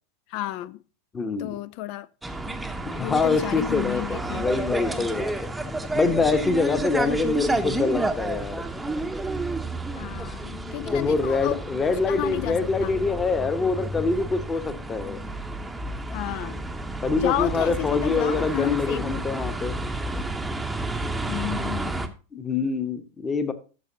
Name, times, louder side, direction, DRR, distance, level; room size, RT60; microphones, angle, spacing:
voice 1, 0.3-0.8 1.4-2.1 3.0-4.5 10.0-11.7 12.1-12.9 16.1-16.7 17.2-19.2 21.3-22.1, left 15 dB, 45° left, 0.4 m, -32 dB
voice 2, 1.1-1.5 2.9-5.3 5.9-8.6 10.8-15.2 17.0-19.7 22.3-23.5, left 4 dB, 20° left, 1.1 m, -25 dB
sound 1, 2.2-22.1, right 2 dB, 5° right, 0.8 m, -31 dB
13.5 x 6.7 x 2.8 m
figure-of-eight pair, 90°, 0 cm